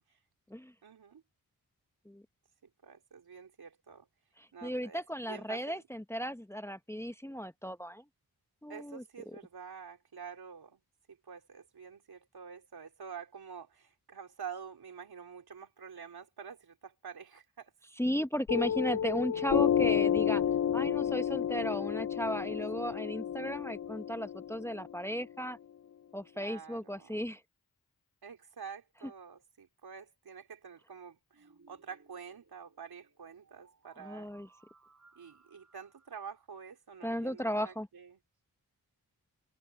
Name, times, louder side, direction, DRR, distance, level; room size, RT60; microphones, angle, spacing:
voice 1, 0.8-1.2 2.6-4.1 4.5-5.8 8.7-10.8 11.1-17.7 22.8-23.0 26.3-27.2 28.2-34.3 35.2-38.2, right 6 dB, 75° right, 3.8 m, -48 dB
voice 2, 4.4-8.0 8.6-9.4 18.0-20.4 20.7-25.6 26.1-27.4 34.0-34.5 37.0-37.9, equal, 5° left, 1.1 m, -35 dB
Piano, 18.5-25.5, left 9 dB, 45° left, 0.6 m, -31 dB
sound 1, 31.3-36.4, right 4 dB, 50° right, 5.6 m, -64 dB
cardioid pair, 45°, 37 cm